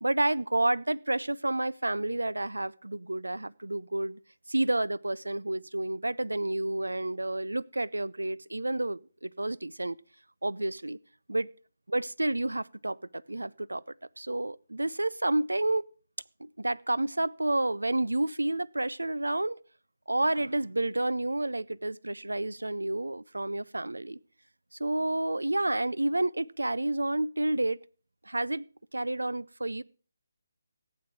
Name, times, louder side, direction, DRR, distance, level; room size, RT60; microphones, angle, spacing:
voice 1, 0.0-4.2 4.5-10.0 10.4-11.0 11.3-11.5 11.9-13.8 14.2-15.9 16.4-19.6 20.1-24.2 24.7-27.8 28.3-28.7 28.9-29.8, right 2 dB, 80° right, 0.4 m, -30 dB
15.0 x 8.5 x 4.5 m
figure-of-eight pair, 150°, 0 cm